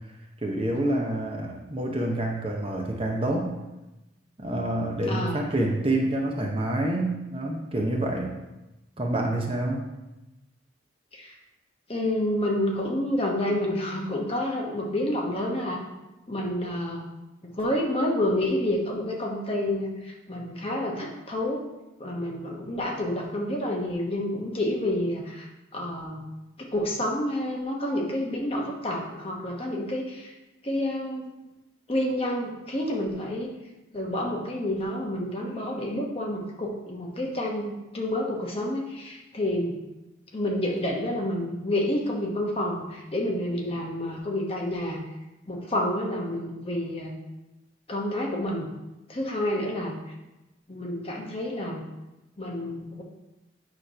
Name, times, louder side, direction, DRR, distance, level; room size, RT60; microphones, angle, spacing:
voice 1, 0.4-3.5 4.4-8.3 9.0-9.9, right 1 dB, 30° right, 0 dB, 0.8 m, -27 dB
voice 2, 5.1-5.4 11.1-11.4 11.9-15.8 16.3-17.1 17.4-21.6 22.0-26.2 26.6-30.3 30.6-31.3 31.9-33.5 33.9-39.7 40.3-45.0 45.5-47.1 47.9-48.7 49.1-49.9 50.7-51.8 52.4-53.0, left 1 dB, 30° left, -1 dB, 1.1 m, -29 dB
8.6 x 3.2 x 5.6 m, 1.0 s
head